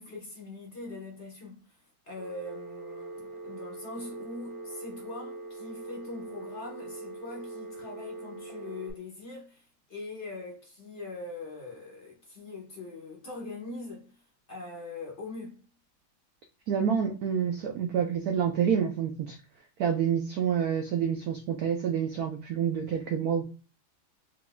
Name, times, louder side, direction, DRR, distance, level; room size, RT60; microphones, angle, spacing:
voice 1, 0.0-1.8 2.0-14.2 14.5-15.6, left 3 dB, 40° left, 1.2 m, -42 dB
Telephone, 2.2-8.9, right 3 dB, 50° right, 1.8 m, -42 dB
voice 2, 16.7-19.4 19.8-23.4, right 8 dB, 80° right, 0.8 m, -28 dB
3.7 x 3.4 x 2.3 m
omnidirectional pair, 2.2 m